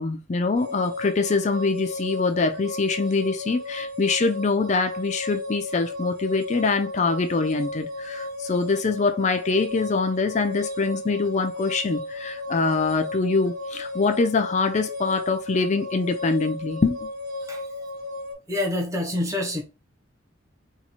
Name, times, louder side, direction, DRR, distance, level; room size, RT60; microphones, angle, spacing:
voice 1, 0.0-17.1, left 4 dB, 35° left, 0.4 m, -24 dB
sound 1, 0.5-18.3, left 2 dB, 45° right, 1.2 m, -34 dB
voice 2, 18.5-19.6, left 1 dB, 15° right, 0.8 m, -26 dB
2.9 x 2.3 x 4.1 m
head